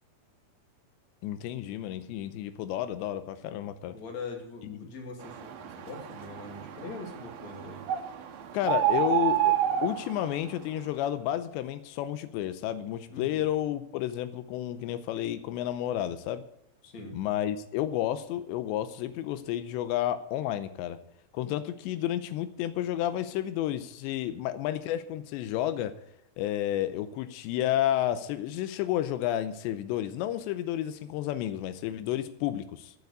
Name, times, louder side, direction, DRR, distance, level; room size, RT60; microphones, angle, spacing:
voice 1, 1.2-4.0 4.7-4.9 8.5-16.4 17.1-21.0 21.3-25.9 26.4-32.9, left 12 dB, 90° left, 12 dB, 3.0 m, -31 dB
voice 2, 3.9-7.8 13.1-13.4 16.8-17.2, left 3 dB, 45° left, 2 dB, 3.4 m, -42 dB
sound 1, 5.2-10.8, right 11 dB, 70° right, 2.7 m, -30 dB
15.0 x 6.8 x 8.3 m, 0.79 s
omnidirectional pair, 5.0 m